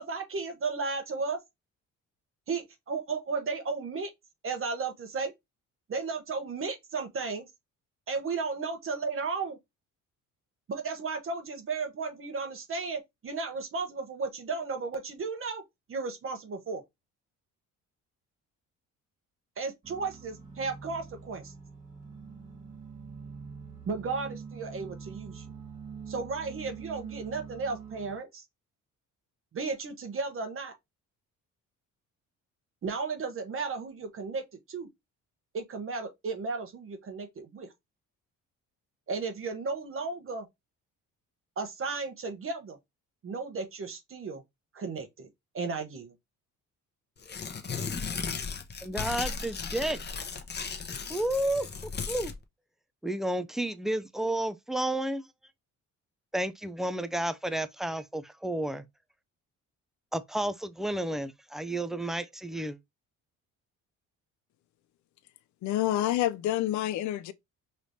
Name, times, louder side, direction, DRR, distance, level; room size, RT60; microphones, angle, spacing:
voice 1, 0.0-1.4 2.5-4.1 4.4-5.3 5.9-7.5 8.1-9.6 10.7-15.6 15.9-16.8 19.6-21.5 23.9-25.5 26.1-28.4 29.5-30.7 32.8-34.9 35.5-37.7 39.1-40.5 41.6-42.8 43.2-44.4 44.7-45.3 45.5-46.1, right 4 dB, 40° right, 1.0 m, -34 dB
sound 1, 19.8-28.2, right 6 dB, 25° right, 1.4 m, -45 dB
Tearing, 47.2-52.4, left 5 dB, 30° left, 0.8 m, -36 dB
voice 2, 48.8-50.0 51.1-52.3 53.0-55.2 56.3-58.8 60.1-62.8, right 1 dB, ahead, 0.3 m, -31 dB
voice 3, 65.6-67.3, left 13 dB, 65° left, 0.5 m, -28 dB
4.8 x 3.2 x 2.7 m
cardioid pair, 100°, 32 cm